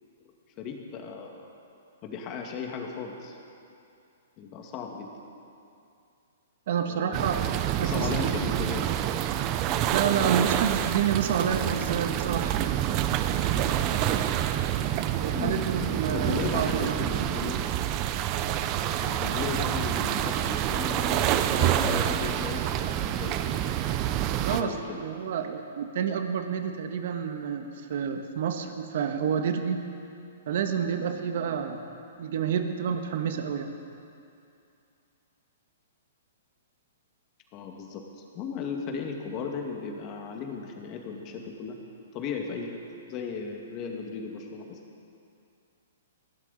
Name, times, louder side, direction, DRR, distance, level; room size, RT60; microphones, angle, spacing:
voice 1, 0.6-1.5 2.0-3.4 4.4-5.1 6.9-7.3 7.8-8.9 13.5-14.3 14.8-15.0 15.3-17.6 18.8-23.7 24.5-25.0 37.5-38.0 38.3-41.8 42.1-42.8 43.1-44.8, left 5 dB, 30° left, 1 dB, 2.2 m, -36 dB
voice 2, 6.7-8.4 9.9-12.6 15.2-16.9 24.4-29.8 30.5-31.8 32.2-33.7, right 7 dB, 60° right, 6 dB, 1.5 m, -29 dB
sound 1, 7.1-24.6, right 11 dB, 30° right, 0.7 m, -27 dB
20.0 x 16.5 x 4.3 m, 2.6 s
hypercardioid pair, 150°, 0 cm